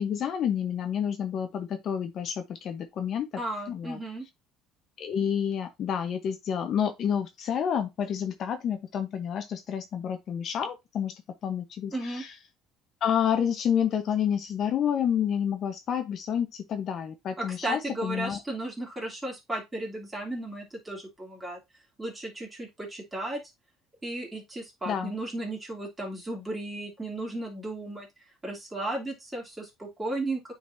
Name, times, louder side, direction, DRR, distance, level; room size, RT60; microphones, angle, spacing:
voice 1, 0.0-3.3 3.7-4.0 5.0-11.1 11.4-12.3 13.0-18.4 24.9-25.1, left 8 dB, 50° left, 0.9 m, -29 dB
voice 2, 3.4-4.3 11.9-12.2 17.4-21.6 22.0-23.4 24.0-28.1 28.4-30.5, right 2 dB, 15° right, 2.9 m, -35 dB
9.3 x 4.0 x 2.6 m
cardioid pair, 120°, 0 cm